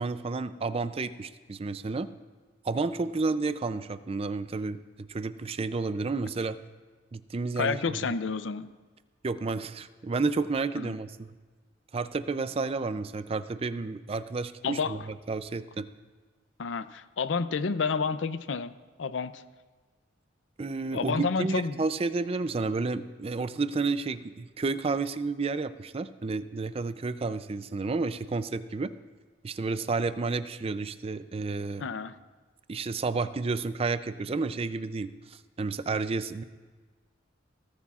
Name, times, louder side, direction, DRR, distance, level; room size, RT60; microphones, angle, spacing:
voice 1, 0.0-2.1 2.6-6.6 7.1-8.1 9.2-11.3 11.9-15.9 20.6-28.9 29.4-31.9 32.7-36.4, right 3 dB, 30° right, 12 dB, 0.4 m, -31 dB
voice 2, 7.6-8.7 10.8-10.9 14.6-14.9 16.6-18.7 19.0-19.4 20.9-21.8 31.8-32.1, left 5 dB, 75° left, 12 dB, 0.5 m, -30 dB
20.0 x 13.5 x 2.4 m, 1.4 s
head